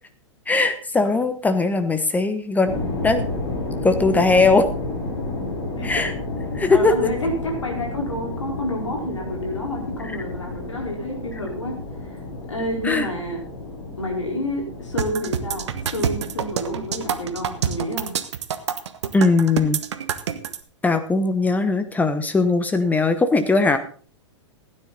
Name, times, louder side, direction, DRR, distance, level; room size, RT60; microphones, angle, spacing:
voice 1, 0.5-2.7 3.0-3.2 3.8-4.7 5.8-6.1 6.5-6.9 12.8-13.1 19.1-19.8 20.8-23.8, left 3 dB, 10° left, 9 dB, 1.1 m, -19 dB
sound 1, 2.6-17.8, left 2 dB, 60° left, 7.1 m, -31 dB
voice 2, 6.7-11.7 12.5-13.4 14.0-18.1, left 1 dB, 80° left, 2 dB, 4.5 m, -29 dB
sound 2, 15.0-20.6, right 8 dB, 65° right, 1.2 m, -26 dB
16.0 x 10.0 x 4.1 m, 0.41 s
figure-of-eight pair, 105°, 16 cm